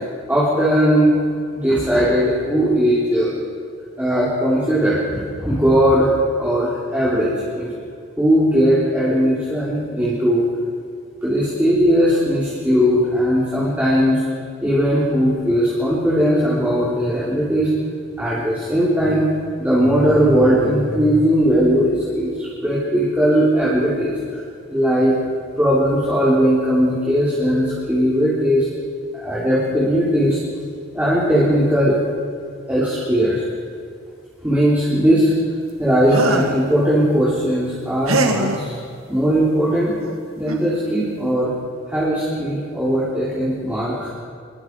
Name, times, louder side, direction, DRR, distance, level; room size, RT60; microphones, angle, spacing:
voice 1, 0.3-1.2 1.5-3.3 4.0-6.1 6.4-7.7 8.2-10.4 11.2-14.2 14.6-17.7 18.2-19.3 19.6-24.2 24.7-25.2 25.6-28.7 29.1-30.4 30.9-32.0 32.7-33.4 34.4-35.3 35.8-38.8 39.1-39.9 40.4-41.5 41.9-44.1, equal, 10° right, -8 dB, 3.6 m, -18 dB
sound 1, 36.1-36.6 38.1-38.6 40.0-40.1 40.5-40.7, right 3 dB, 90° right, 2.0 m, -22 dB
26.5 x 21.5 x 4.7 m, 2.3 s
head